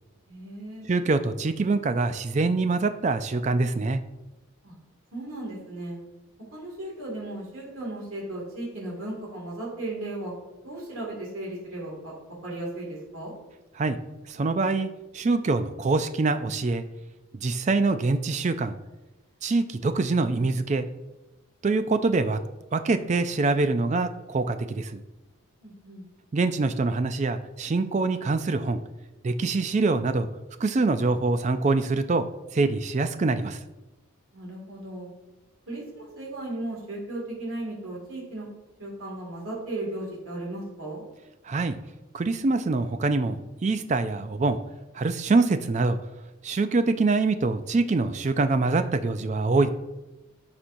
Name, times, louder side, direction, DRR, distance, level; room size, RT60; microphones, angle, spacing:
voice 1, 0.3-0.8 4.6-4.8 5.1-6.0 6.5-10.3 10.6-12.1 12.4-13.3 25.6-26.0 34.3-35.1 35.7-38.5 38.8-41.0, right 1 dB, 80° right, -3 dB, 2.2 m, -36 dB
voice 2, 0.9-4.0 13.8-14.0 14.3-16.8 17.3-18.7 19.4-20.9 21.6-22.4 22.7-25.0 26.3-28.8 29.2-30.3 30.6-32.2 32.5-33.6 41.4-41.8 42.1-44.6 44.9-46.0 46.4-49.7, right 3 dB, 35° right, 10 dB, 0.3 m, -24 dB
12.5 x 4.3 x 2.6 m, 1.0 s
head